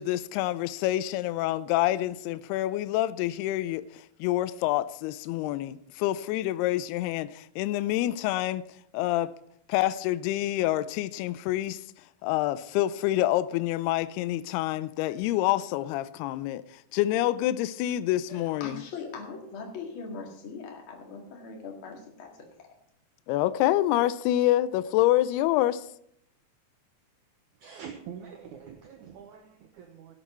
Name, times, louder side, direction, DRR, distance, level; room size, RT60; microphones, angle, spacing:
voice 1, 0.0-3.8 4.2-8.6 8.9-9.3 9.7-11.8 12.2-16.6 16.9-18.8 23.3-25.8, left 14 dB, 80° left, 2.5 m, -27 dB
voice 2, 18.3-22.7, left 4 dB, 40° left, 2.3 m, -41 dB
voice 3, 27.6-30.2, right 7 dB, 90° right, 1.7 m, -45 dB
16.5 x 8.2 x 4.4 m
omnidirectional pair, 4.7 m